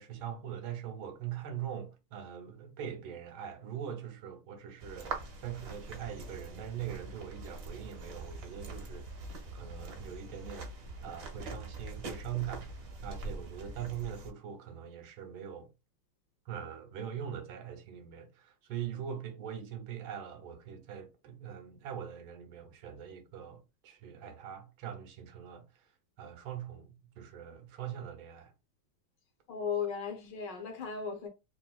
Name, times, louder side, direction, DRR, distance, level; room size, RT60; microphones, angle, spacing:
voice 1, 0.0-9.2 9.5-15.7 16.5-25.9 26.2-28.5, right 9 dB, 90° right, 1.6 m, -42 dB
sound 1, 4.8-14.3, right 2 dB, 60° right, 0.9 m, -43 dB
voice 2, 29.5-31.3, left 6 dB, 65° left, 1.4 m, -36 dB
3.8 x 2.5 x 2.2 m
omnidirectional pair, 2.2 m